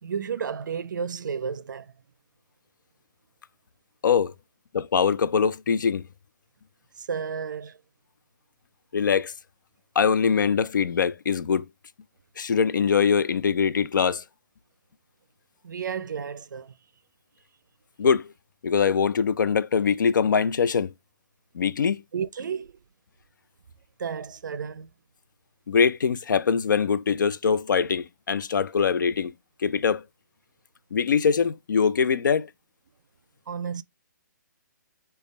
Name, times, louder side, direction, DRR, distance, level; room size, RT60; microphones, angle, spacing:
voice 1, 0.0-1.9 7.0-7.8 15.6-16.7 22.1-22.8 24.0-24.9 33.5-33.8, right 6 dB, 80° right, 0.4 m, -32 dB
voice 2, 4.0-4.3 4.7-6.0 8.9-9.3 10.0-11.7 12.4-14.2 18.0-18.2 18.6-20.9 21.5-22.0 25.7-29.3 29.6-30.0 30.9-32.5, left 6 dB, 80° left, 0.4 m, -23 dB
5.1 x 2.3 x 4.0 m
hypercardioid pair, 170°, 10 cm